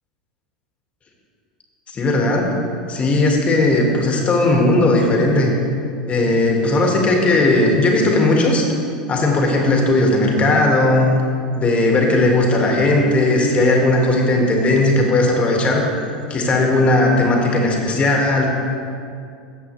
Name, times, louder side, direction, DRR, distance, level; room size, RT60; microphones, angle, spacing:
voice 1, 1.9-2.5 2.9-5.5 6.1-8.6 9.1-11.1 11.6-15.8 16.3-18.5, left 2 dB, 30° left, 0 dB, 2.1 m, -17 dB
13.5 x 8.1 x 3.3 m, 2.4 s
hypercardioid pair, 85°, 4 cm